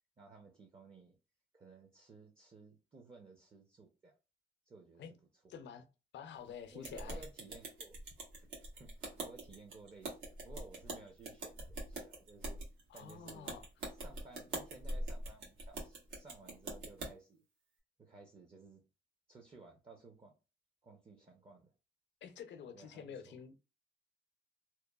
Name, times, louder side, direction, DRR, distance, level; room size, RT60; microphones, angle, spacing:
voice 1, 0.2-1.2 1.5-4.1 4.7-5.0 6.7-8.0 8.3-12.6 12.9-13.6 14.0-17.4 18.0-18.8 19.3-20.3 20.8-21.7 22.7-23.3, right 3 dB, 25° right, 0.6 m, -57 dB
voice 2, 5.5-5.8 6.1-7.3 12.9-13.7 22.2-23.5, left 7 dB, 65° left, 0.5 m, -48 dB
sound 1, 6.8-17.1, right 2 dB, 80° right, 1.2 m, -44 dB
2.9 x 2.2 x 2.3 m
cardioid pair, 90°, 20 cm